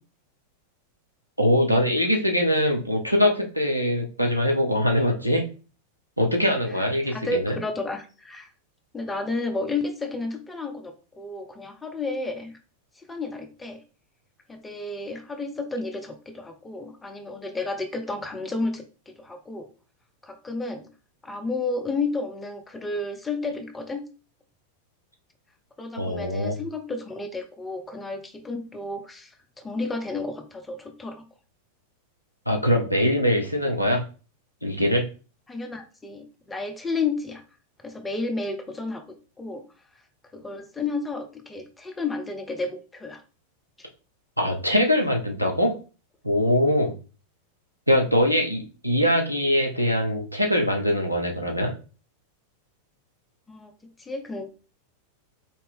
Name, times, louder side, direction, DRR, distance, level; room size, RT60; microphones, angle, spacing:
voice 1, 1.4-5.5 6.2-7.6 26.0-26.6 32.5-34.1 34.6-35.0 44.4-45.8 46.2-46.9 47.9-51.7, equal, 90° right, 2 dB, 0.7 m, -22 dB
voice 2, 7.1-8.5 8.9-12.6 13.1-13.8 14.5-19.7 20.2-20.9 21.2-24.0 25.8-29.3 29.6-31.2 35.5-37.4 37.8-39.6 40.3-43.2 53.5-53.7 54.0-54.5, left 3 dB, 10° left, 5 dB, 0.7 m, -32 dB
4.3 x 2.8 x 3.5 m, 0.35 s
figure-of-eight pair, 90°, 0 cm